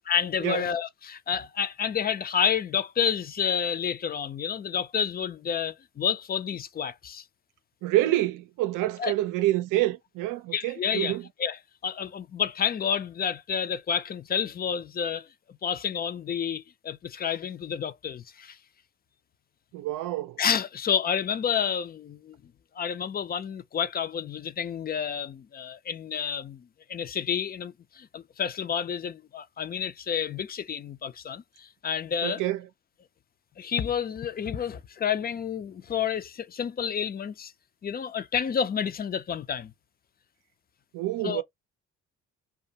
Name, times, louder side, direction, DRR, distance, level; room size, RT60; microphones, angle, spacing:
voice 1, 0.1-7.2 9.0-9.1 10.5-15.3 15.6-18.6 20.4-22.4 22.8-32.4 33.6-37.5 37.8-39.7 41.2-41.4, left 8 dB, 30° left, 0.4 m, -30 dB
voice 2, 7.8-11.3 19.7-20.4 32.2-32.6 40.9-41.4, right 15 dB, 80° right, 0.5 m, -27 dB
2.4 x 2.3 x 2.7 m
cardioid pair, 80°, 31 cm